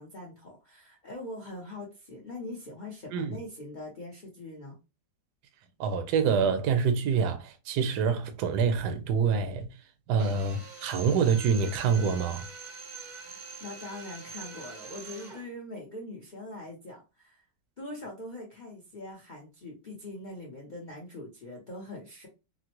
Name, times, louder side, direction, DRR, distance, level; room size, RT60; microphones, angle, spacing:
voice 1, 0.0-4.8 13.0-17.4 17.8-22.3, left 1 dB, 75° left, 0.4 m, -42 dB
voice 2, 5.8-9.7 10.1-12.4, right 6 dB, 70° right, 1.0 m, -26 dB
Drill, 10.2-15.5, right 4 dB, 55° right, 0.5 m, -44 dB
3.6 x 2.0 x 2.9 m
omnidirectional pair, 2.0 m